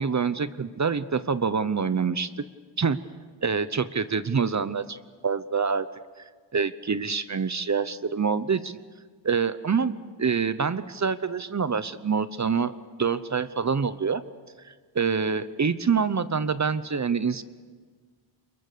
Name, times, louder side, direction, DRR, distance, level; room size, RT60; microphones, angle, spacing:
voice 1, 0.0-2.3 2.8-3.0 3.4-5.0 5.2-5.9 6.5-8.8 9.2-14.2 14.6-17.4, right 5 dB, 40° right, 14 dB, 0.8 m, -26 dB
29.0 x 21.5 x 6.9 m, 1.5 s
wide cardioid pair, 90°, 45 cm